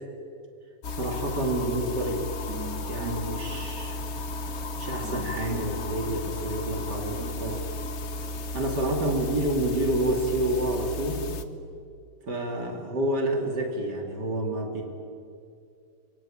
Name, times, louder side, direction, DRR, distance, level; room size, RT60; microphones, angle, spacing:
sound 1, 0.8-11.5, left 2 dB, 45° left, 1.1 m, -34 dB
voice 1, 0.9-2.2 2.9-4.0 4.8-7.6 8.5-11.3 12.3-14.8, right 1 dB, 65° right, 2 dB, 3.6 m, -28 dB
sound 2, 1.3-8.7, right 4 dB, 50° right, 2.9 m, -44 dB
24.0 x 23.5 x 8.9 m, 2.4 s
omnidirectional pair, 1.9 m